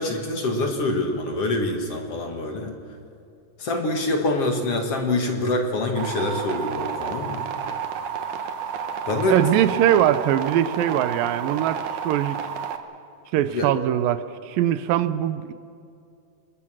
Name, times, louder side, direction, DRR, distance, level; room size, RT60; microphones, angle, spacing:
voice 1, 0.0-2.7 3.6-7.5 9.1-9.4 13.5-13.7, left 2 dB, 50° left, 3 dB, 2.4 m, -25 dB
sound 1, 6.0-12.8, right 7 dB, 65° right, 2.5 m, -31 dB
voice 2, 9.3-11.8 12.0-12.4 13.3-15.5, right 11 dB, 80° right, 12 dB, 2.5 m, -21 dB
28.0 x 21.0 x 6.3 m, 2.5 s
omnidirectional pair, 4.0 m